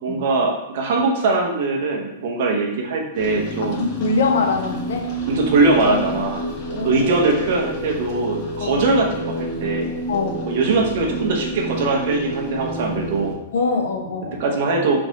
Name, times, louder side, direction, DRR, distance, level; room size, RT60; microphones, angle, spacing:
voice 1, 0.0-3.8 5.3-9.9 10.4-13.3 14.4-15.0, right 3 dB, 60° right, 1 dB, 0.9 m, -21 dB
sound 1, 3.1-13.4, right 1 dB, 35° left, 1.1 m, -29 dB
voice 2, 3.8-5.1 6.7-7.0 8.6-8.9 10.1-10.5 13.5-14.4, left 4 dB, 75° left, 3 dB, 0.8 m, -23 dB
3.4 x 3.1 x 4.0 m, 0.90 s
hypercardioid pair, 140°, 0 cm